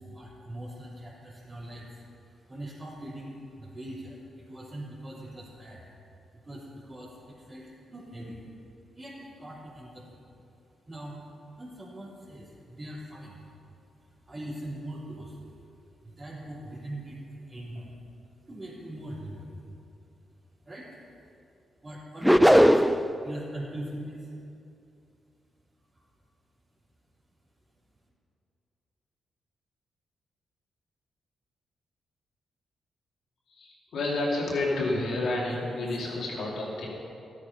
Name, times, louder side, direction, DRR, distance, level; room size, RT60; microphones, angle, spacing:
voice 1, 0.0-19.6 20.6-21.3 21.8-23.0 23.2-24.3 25.9-26.1 35.5-35.6, right 1 dB, 35° right, -9 dB, 3.3 m, -42 dB
sound 1, 22.2-23.1, equal, ahead, 0.5 m, -18 dB
voice 2, 33.5-36.9, left 2 dB, 75° left, -4 dB, 2.8 m, -30 dB
13.0 x 8.6 x 5.5 m, 2.7 s
supercardioid pair, 45°, 0 cm